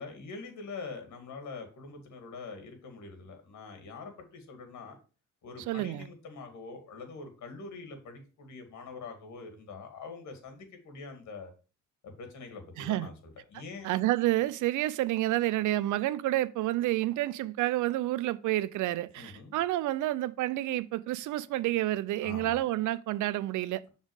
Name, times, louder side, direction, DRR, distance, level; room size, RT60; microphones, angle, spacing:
voice 1, 0.0-5.0 5.4-11.5 12.0-13.9 19.2-19.6 22.2-22.6, left 4 dB, 70° left, 2.3 m, -44 dB
voice 2, 5.7-6.1 12.8-13.1 13.8-23.9, right 15 dB, 80° right, 0.5 m, -29 dB
6.3 x 4.0 x 4.8 m
cardioid pair, 90°, 30 cm